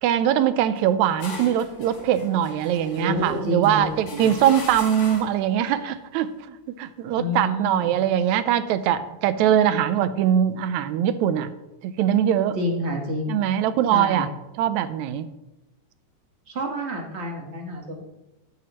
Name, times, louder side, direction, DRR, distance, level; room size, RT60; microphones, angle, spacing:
voice 1, 0.0-11.5 11.8-12.6 13.3-14.3 14.6-15.3, right 10 dB, 80° right, 13 dB, 1.9 m, -22 dB
sound 1, 0.8-5.5, left 3 dB, 80° left, 4.3 m, -40 dB
voice 2, 3.0-4.3 7.1-7.9 12.5-13.4 13.9-14.3 16.5-18.0, equal, 65° right, 1 dB, 0.6 m, -28 dB
13.5 x 9.1 x 3.0 m, 0.94 s
omnidirectional pair, 3.5 m